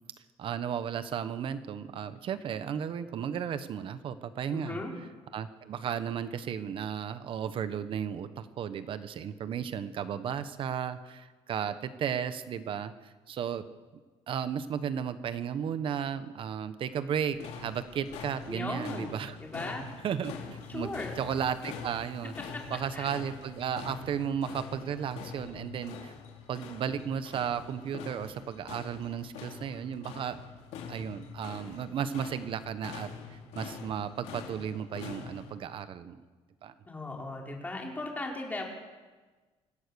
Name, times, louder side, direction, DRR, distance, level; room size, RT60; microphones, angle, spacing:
voice 1, 0.4-4.8 5.3-13.6 14.3-19.4 20.0-20.9 21.2-22.3 22.7-26.1 26.5-30.4 30.9-36.2 36.6-36.7, right 8 dB, 55° right, 12 dB, 1.2 m, -34 dB
voice 2, 4.5-4.9 18.5-19.9 20.7-21.2 22.5-22.6 22.9-23.1 36.9-38.6, left 2 dB, 15° left, -1 dB, 4.3 m, -37 dB
sound 1, 17.3-35.5, left 6 dB, 85° left, 3.0 m, -45 dB
25.0 x 16.5 x 7.0 m, 1.3 s
cardioid pair, 135°, 11 cm